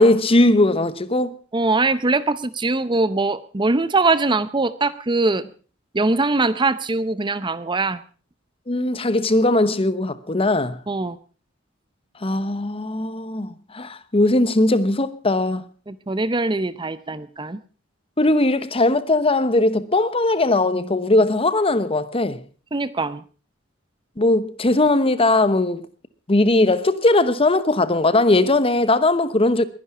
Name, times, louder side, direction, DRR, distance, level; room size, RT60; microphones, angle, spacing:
voice 1, 0.0-1.4 8.7-10.8 12.2-15.6 18.2-22.4 24.2-25.9 26.3-29.6, left 2 dB, 30° left, 1.0 m, -19 dB
voice 2, 1.5-5.4 5.9-8.0 10.9-11.2 15.9-17.6 22.7-23.2, right 3 dB, 25° right, 0.7 m, -22 dB
21.0 x 10.5 x 5.6 m
head